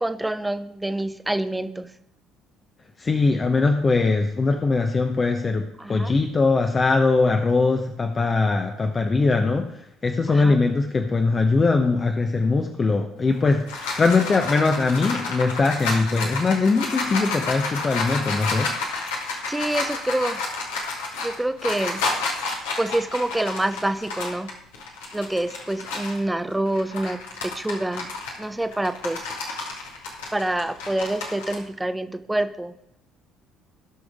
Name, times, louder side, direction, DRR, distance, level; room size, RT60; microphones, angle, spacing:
voice 1, 0.0-1.9 5.8-6.2 10.3-10.6 19.5-20.4 21.2-22.0 22.8-24.5 25.1-28.1 28.4-29.3 30.3-32.7, right 1 dB, 10° right, 12 dB, 0.7 m, -26 dB
voice 2, 3.0-18.7, left 3 dB, 30° left, 4 dB, 1.0 m, -21 dB
sound 1, 13.3-26.2 26.7-31.6, left 3 dB, 70° left, 2.0 m, -30 dB
18.5 x 6.2 x 3.7 m, 0.79 s
figure-of-eight pair, 55°, 0 cm